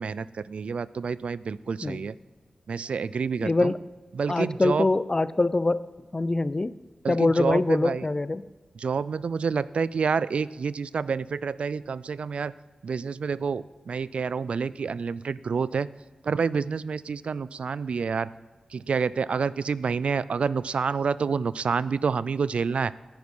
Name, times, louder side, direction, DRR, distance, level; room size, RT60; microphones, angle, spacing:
voice 1, 0.0-2.1 2.7-3.7 4.1-4.9 7.0-8.0 8.8-12.5 12.8-15.9 16.2-18.3 18.7-22.9, right 5 dB, 75° right, 19 dB, 0.3 m, -28 dB
voice 2, 3.4-3.8 4.3-6.7 7.1-8.4, left 2 dB, 35° left, 17 dB, 0.4 m, -24 dB
10.5 x 9.5 x 5.5 m, 1.3 s
cardioid pair, 50°, 2 cm